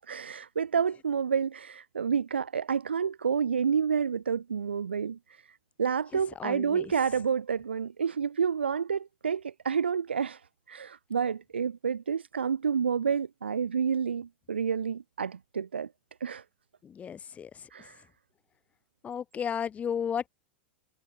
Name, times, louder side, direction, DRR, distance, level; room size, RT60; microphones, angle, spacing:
voice 1, 0.1-10.4 10.7-15.9 16.2-16.4 17.7-18.0, right 6 dB, 90° right, 2.6 m, -29 dB
voice 2, 6.3-6.9 16.8-17.7 19.0-20.3, left 8 dB, 25° left, 3.2 m, -34 dB
hypercardioid pair, 105°, 6 cm